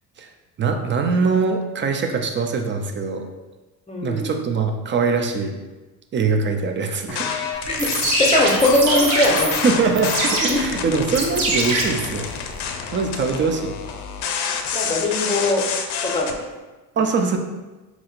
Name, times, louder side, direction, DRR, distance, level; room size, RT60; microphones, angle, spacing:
voice 1, 0.6-3.3 4.0-5.5 6.1-7.4 9.6-12.3 12.9-13.7 17.0-17.4, right 4 dB, 25° right, 5 dB, 0.3 m, -22 dB
voice 2, 3.9-4.3 7.7-9.8 10.5-10.6 14.7-15.6 16.0-16.4, left 1 dB, 15° left, 0 dB, 0.7 m, -21 dB
sound 1, 7.1-16.3, left 6 dB, 60° left, 0.5 m, -28 dB
sound 2, 7.6-12.6, right 3 dB, 70° right, 0.9 m, -24 dB
4.1 x 2.9 x 2.4 m, 1.2 s
supercardioid pair, 80°, 47 cm